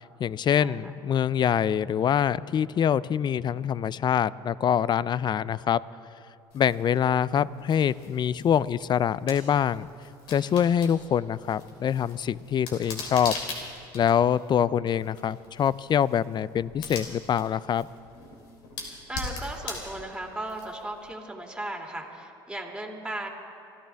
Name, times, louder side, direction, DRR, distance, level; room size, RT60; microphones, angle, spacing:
voice 1, 0.2-5.8 6.5-9.9 10.3-13.3 13.9-17.9, left 9 dB, 40° left, 19 dB, 0.4 m, -25 dB
sound 1, 6.5-21.1, left 3 dB, 80° left, 3.2 m, -42 dB
voice 2, 19.1-23.3, right 1 dB, 5° right, 1 dB, 2.7 m, -36 dB
26.0 x 14.0 x 3.5 m, 2.7 s
supercardioid pair, 80°, 12 cm